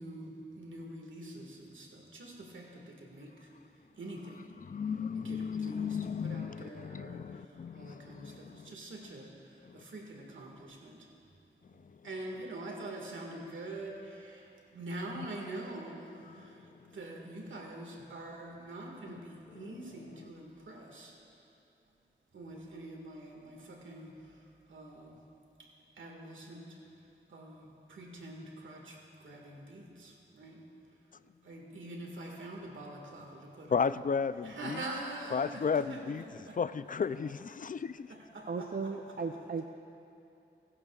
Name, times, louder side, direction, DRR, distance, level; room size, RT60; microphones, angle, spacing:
voice 1, 0.0-3.5 4.0-4.4 5.2-11.1 12.0-21.1 22.3-25.2 26.0-26.7 27.3-30.6 31.4-33.7 34.4-36.6 38.1-38.9, right 1 dB, 90° right, -1 dB, 1.9 m, -45 dB
voice 2, 4.6-8.7 9.6-9.8 15.1-15.3 16.3-16.5 19.1-19.2 19.5-19.8 33.7-34.8 35.3-36.2 36.5-38.1, left 6 dB, 45° left, 15 dB, 0.4 m, -34 dB
voice 3, 38.5-39.7, right 4 dB, 50° right, 4 dB, 0.6 m, -36 dB
22.5 x 11.0 x 2.4 m, 2.8 s
cardioid pair, 45°, 19 cm